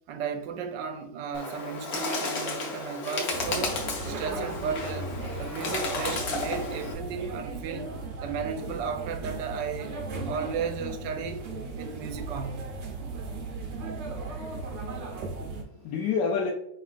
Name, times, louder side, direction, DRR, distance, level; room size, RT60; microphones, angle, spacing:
voice 1, 0.1-3.8 4.1-7.9 8.2-10.0 10.2-11.5 11.8-12.7, right 6 dB, 85° right, 1.2 m, -34 dB
Bird, 1.3-6.9, left 3 dB, 60° left, 1.3 m, -33 dB
sound 1, 3.3-15.6, right 3 dB, 55° right, 0.8 m, -36 dB
voice 2, 14.8-16.5, left 5 dB, 80° left, 1.2 m, -30 dB
5.5 x 3.1 x 2.4 m
omnidirectional pair, 1.9 m